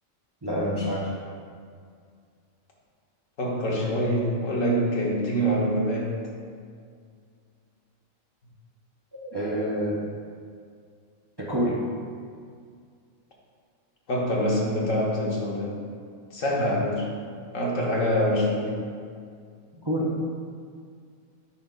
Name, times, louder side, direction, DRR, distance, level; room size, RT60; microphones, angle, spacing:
voice 1, 0.4-1.2 9.1-10.0 11.4-11.8 19.8-20.1, equal, 25° right, -4 dB, 0.5 m, -27 dB
voice 2, 3.4-6.1 14.1-15.7 16.3-17.1 17.5-18.7, equal, 70° left, -3 dB, 1.5 m, -25 dB
10.5 x 5.2 x 2.4 m, 2.1 s
omnidirectional pair, 1.4 m